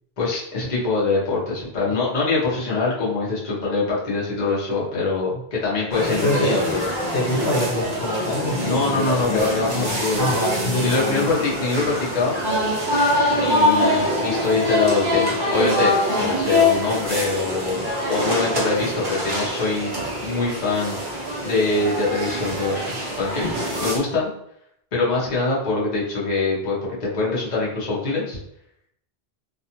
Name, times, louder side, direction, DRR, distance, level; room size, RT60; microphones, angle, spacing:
voice 1, 0.2-6.9 8.6-10.3 10.8-12.3 13.3-17.8 18.0-21.0 21.4-24.3 24.9-28.4, left 3 dB, 45° left, -5 dB, 0.9 m, -24 dB
sound 1, 5.9-24.0, left 1 dB, 30° right, 0.6 m, -24 dB
voice 2, 6.2-6.5 7.1-11.3, left 1 dB, 75° left, -3 dB, 1.0 m, -25 dB
2.5 x 2.3 x 2.8 m, 0.74 s
omnidirectional pair, 1.1 m